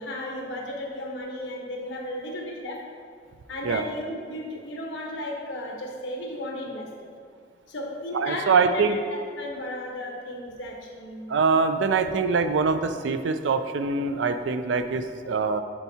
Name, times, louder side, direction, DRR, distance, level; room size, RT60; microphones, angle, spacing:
voice 1, 0.0-2.8 3.5-7.1 7.7-9.0 9.4-11.4, left 1 dB, 85° left, 0 dB, 1.1 m, -34 dB
voice 2, 8.1-9.0 11.3-15.6, right 4 dB, 80° right, 9 dB, 0.4 m, -24 dB
9.8 x 4.6 x 2.8 m, 2.2 s
head